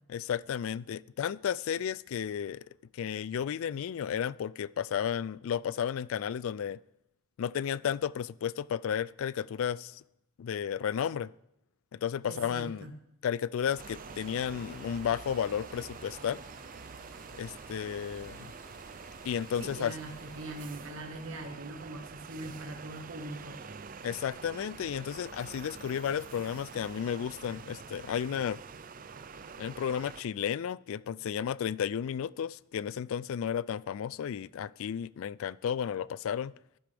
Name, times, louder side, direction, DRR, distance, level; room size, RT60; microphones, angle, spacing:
voice 1, 0.1-2.6 2.9-6.8 7.4-10.0 10.4-11.3 11.9-12.8 13.2-16.4 17.3-18.5 19.3-19.9 24.0-28.6 29.6-36.5, left 8 dB, 70° left, 0.3 m, -33 dB
voice 2, 12.3-12.9 19.6-23.6, right 2 dB, 65° right, 1.6 m, -42 dB
sound 1, 13.5-20.9, equal, 20° left, 5.3 m, -56 dB
sound 2, 13.8-30.2, right 5 dB, 40° right, 0.5 m, -47 dB
14.5 x 11.5 x 3.5 m
head